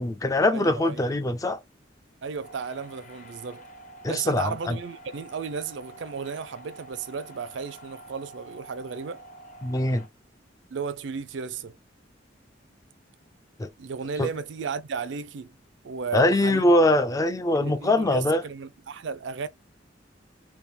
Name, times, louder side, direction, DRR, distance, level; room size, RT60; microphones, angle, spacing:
voice 1, 0.0-1.6 4.0-4.8 9.6-10.1 13.6-13.7 14.2-14.3 16.1-18.4, left 1 dB, 20° left, 0.4 m, -22 dB
voice 2, 0.5-1.1 2.2-3.6 4.1-9.2 10.7-11.7 13.8-15.5 15.8-16.7 17.6-19.5, right 5 dB, 70° right, 0.4 m, -34 dB
sound 1, 2.4-10.1, right 2 dB, 45° left, 0.9 m, -47 dB
3.5 x 2.2 x 4.2 m
head